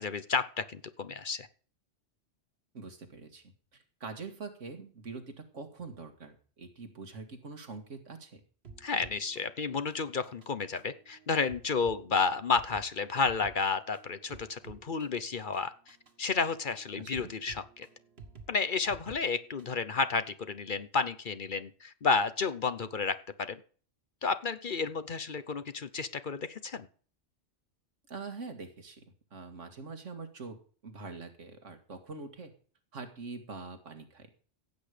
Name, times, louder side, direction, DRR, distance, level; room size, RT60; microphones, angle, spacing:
voice 1, 0.0-1.5 8.8-17.9 18.5-23.6 24.2-26.9, left 5 dB, 45° left, 13 dB, 0.9 m, -31 dB
voice 2, 2.7-8.4 17.0-17.3 28.1-29.0 29.3-30.6 30.8-32.5 32.9-34.3, right 4 dB, 90° right, 6 dB, 2.2 m, -44 dB
sound 1, 8.6-19.9, right 4 dB, 55° right, 1.8 m, -53 dB
15.5 x 8.5 x 5.1 m, 0.42 s
omnidirectional pair, 1.2 m